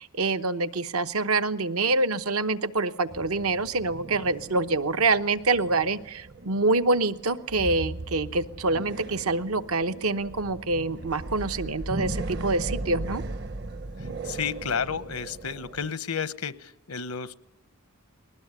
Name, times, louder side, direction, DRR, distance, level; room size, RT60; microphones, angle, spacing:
voice 1, 0.0-13.2, right 3 dB, 80° right, 10 dB, 1.0 m, -26 dB
sound 1, 3.1-15.9, right 2 dB, 50° right, 0.9 m, -37 dB
voice 2, 14.0-17.3, left 6 dB, 85° left, 14 dB, 1.0 m, -32 dB
20.5 x 19.0 x 9.6 m, 0.77 s
head